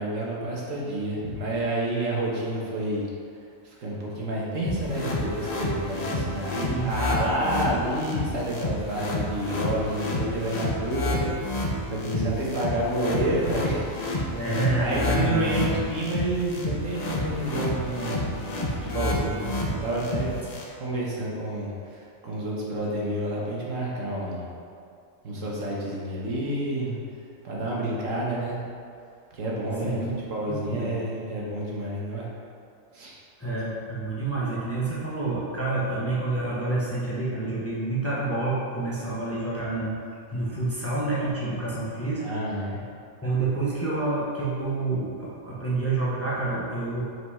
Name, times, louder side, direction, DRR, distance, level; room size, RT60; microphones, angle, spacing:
voice 1, 0.0-3.1 3.6-14.3 14.8-20.3 20.7-24.5 25.2-27.0 27.4-28.6 29.3-30.0 30.3-32.3 32.9-33.1 42.2-42.8, right 1 dB, 75° right, -4 dB, 1.5 m, -29 dB
sound 1, 4.6-20.6, left 1 dB, 40° left, 0.7 m, -30 dB
voice 2, 6.5-6.9 12.0-12.4 14.3-15.9 29.8-30.1 30.4-30.9 33.4-42.2 43.2-47.0, right 2 dB, 10° left, -8 dB, 0.9 m, -28 dB
5.0 x 4.7 x 4.2 m, 2.3 s
omnidirectional pair, 1.4 m